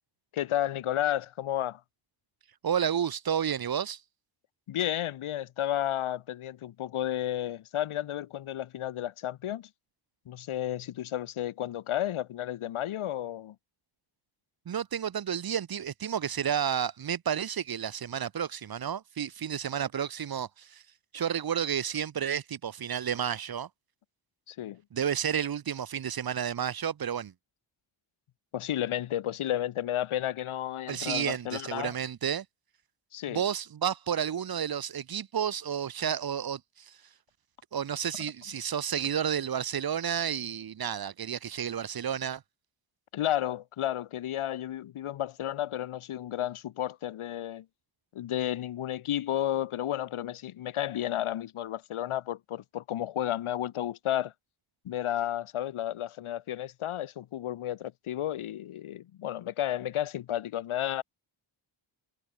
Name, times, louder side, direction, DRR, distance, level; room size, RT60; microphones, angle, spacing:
voice 1, 0.3-1.8 4.7-9.7 10.3-13.6 24.5-24.8 28.5-31.9 33.1-33.4 43.1-47.7 48.1-54.3 54.8-61.0, left 12 dB, 80° left, 0.8 m, -32 dB
voice 2, 2.6-4.0 14.7-20.8 21.1-23.7 24.9-27.3 30.9-32.4 33.3-37.0 37.7-42.4, right 8 dB, 45° right, 0.7 m, -31 dB
cardioid pair, 70°, 49 cm